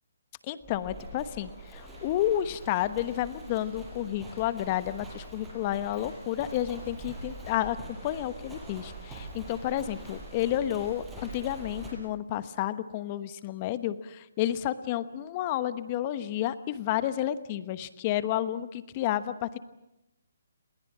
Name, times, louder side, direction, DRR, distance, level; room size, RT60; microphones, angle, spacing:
voice 1, 0.4-7.8 8.0-19.6, left 12 dB, 30° left, 13 dB, 1.1 m, -31 dB
Livestock farm animals working animals, 0.6-11.9, right 2 dB, 5° right, 6.4 m, -44 dB
28.5 x 21.5 x 7.5 m, 0.93 s
hypercardioid pair, 150°, 0 cm